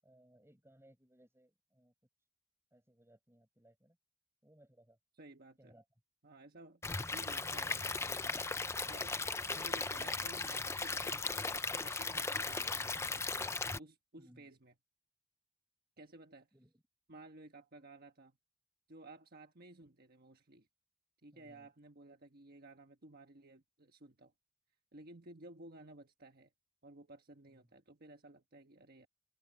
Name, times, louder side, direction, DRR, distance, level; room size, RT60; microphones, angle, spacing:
voice 1, 0.0-1.9 2.7-4.0 4.4-5.0 5.6-5.8 14.2-14.5 16.5-16.8 21.3-21.7 27.5-27.7, right 1 dB, 15° right, 7.5 m, -65 dB
voice 2, 5.2-5.7 6.2-8.6 8.9-9.2 9.5-14.7 16.0-16.5 17.1-18.4 18.9-20.7 21.2-24.3 24.9-26.5 26.8-29.1, right 2 dB, 50° right, 1.3 m, -56 dB
Stream / Liquid, 6.8-13.8, left 3 dB, 15° left, 0.6 m, -37 dB
head